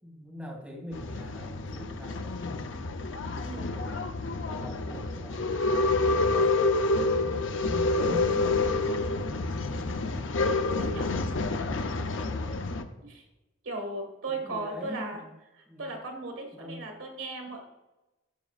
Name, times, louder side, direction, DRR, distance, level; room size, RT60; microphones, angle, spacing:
voice 1, 0.0-5.4 5.9-10.4 10.6-13.1 14.3-15.3 15.7-16.0 16.5-16.9, equal, 5° right, -3 dB, 2.3 m, -44 dB
Male speech man speaking / Chatter / Rattle, 0.9-12.8, left 3 dB, 65° left, 0.6 m, -28 dB
voice 2, 3.4-3.7 4.4-4.7 8.8-9.1 10.8-11.1 13.0-13.2 13.6-15.2 15.8-17.6, right 2 dB, 80° right, 3 dB, 1.6 m, -37 dB
12.0 x 6.1 x 2.4 m, 1.0 s
head